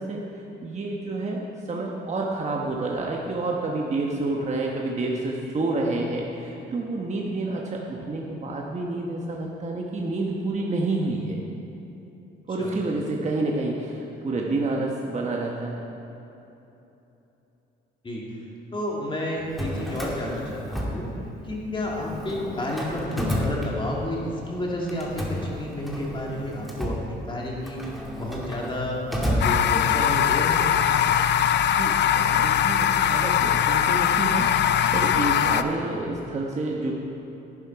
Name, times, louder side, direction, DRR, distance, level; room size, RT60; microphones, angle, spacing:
voice 1, 0.0-11.4 12.5-15.8 31.4-36.9, right 2 dB, 35° right, -1 dB, 1.2 m, -29 dB
voice 2, 18.7-21.1 21.4-27.8 28.1-30.6 31.0-31.2, left 1 dB, 25° left, -3 dB, 2.7 m, -31 dB
Drawer open or close, 19.4-21.6 21.9-24.3 24.9-30.2, equal, ahead, 2.0 m, -31 dB
sound 1, 29.4-35.6, left 9 dB, 65° left, 0.5 m, -21 dB
11.0 x 10.5 x 4.7 m, 3.0 s
cardioid pair, 90°, 20 cm